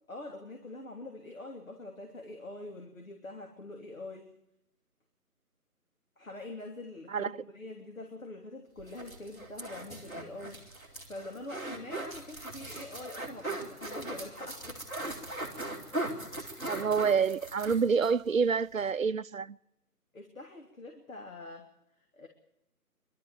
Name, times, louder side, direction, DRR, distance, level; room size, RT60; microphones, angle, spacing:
voice 1, 0.1-4.3 6.2-14.8 20.1-21.7 22.1-22.3, left 2 dB, 60° left, 3.3 m, -45 dB
sound 1, 8.8-18.1 18.4-18.5 18.8-18.9, right 1 dB, 10° left, 2.1 m, -39 dB
voice 2, 16.7-19.6, right 6 dB, 60° right, 0.7 m, -27 dB
22.5 x 13.0 x 9.0 m
figure-of-eight pair, 155°, 46 cm